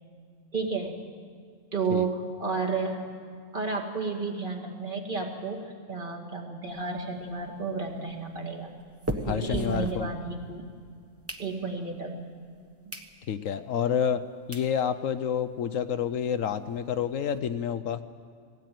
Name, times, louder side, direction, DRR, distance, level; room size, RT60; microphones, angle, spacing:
voice 1, 0.5-1.0 1.7-3.2 3.5-8.7 9.3-10.6 11.4-12.2 12.9-13.0, right 4 dB, 35° right, -1 dB, 2.2 m, -32 dB
sound 1, 6.7-10.6 11.0-12.0 12.5-12.6 12.9-13.1 13.6-13.7 14.2-14.3 14.5-14.7 15.1-15.2 15.4-15.5 15.8-15.9 16.2-17.4, equal, 10° right, 1.0 m, -39 dB
voice 2, 9.2-10.1 13.3-14.2 14.5-18.0, left 8 dB, 70° left, 11 dB, 1.0 m, -28 dB
19.5 x 17.0 x 9.3 m, 2.3 s
omnidirectional pair, 1.4 m